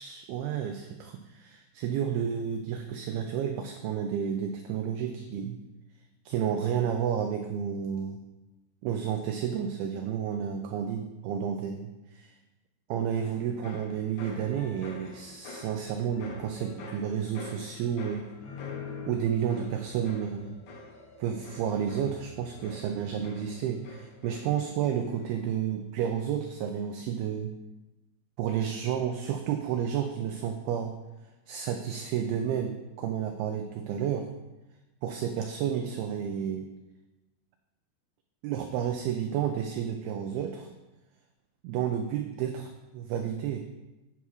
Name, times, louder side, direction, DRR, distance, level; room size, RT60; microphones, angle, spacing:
voice 1, 0.0-5.6 6.3-8.2 8.8-12.3 12.9-18.3 19.1-20.6 21.2-27.5 28.4-30.9 31.5-34.3 35.0-36.7 38.4-40.7 41.6-43.6, right 8 dB, 80° right, 5 dB, 2.2 m, -31 dB
sound 1, 13.1-24.7 25.0-25.5, left 4 dB, 65° left, 1.9 m, -46 dB
8.6 x 6.9 x 4.7 m, 1.0 s
omnidirectional pair, 5.0 m